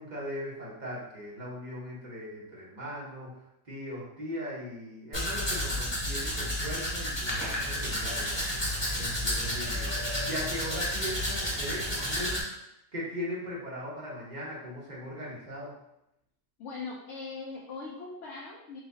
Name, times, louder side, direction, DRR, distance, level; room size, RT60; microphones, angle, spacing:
voice 1, 0.0-8.4 9.0-12.6 12.9-15.7, equal, 35° right, -5 dB, 1.1 m, -39 dB
Domestic sounds home sounds, 5.1-12.4, left 1 dB, 25° left, 0.9 m, -31 dB
sound 1, 7.3-12.4, equal, 55° right, 1.4 m, -45 dB
voice 2, 16.6-18.8, left 4 dB, 75° left, -3 dB, 0.9 m, -40 dB
6.1 x 2.3 x 2.7 m, 0.82 s
omnidirectional pair, 1.3 m